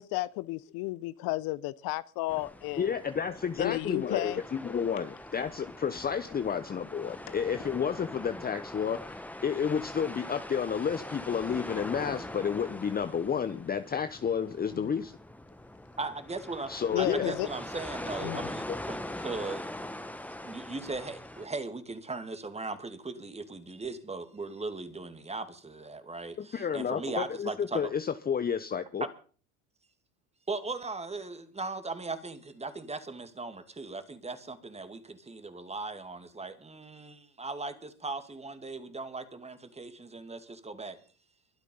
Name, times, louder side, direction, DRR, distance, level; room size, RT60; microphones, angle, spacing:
voice 1, 0.0-3.0 3.6-4.4 14.8-14.9 16.9-17.5 18.2-18.5, left 18 dB, 55° left, 0.9 m, -33 dB
sound 1, 2.3-21.5, left 1 dB, 5° left, 1.5 m, -42 dB
voice 2, 2.8-15.2 16.7-17.3 18.7-18.8 26.4-29.0, left 7 dB, 20° left, 0.9 m, -31 dB
voice 3, 16.0-16.7 17.0-19.7 20.4-27.9 29.0-29.1 30.5-41.0, right 3 dB, 15° right, 2.4 m, -38 dB
23.0 x 8.3 x 5.5 m
hypercardioid pair, 85°, 43 cm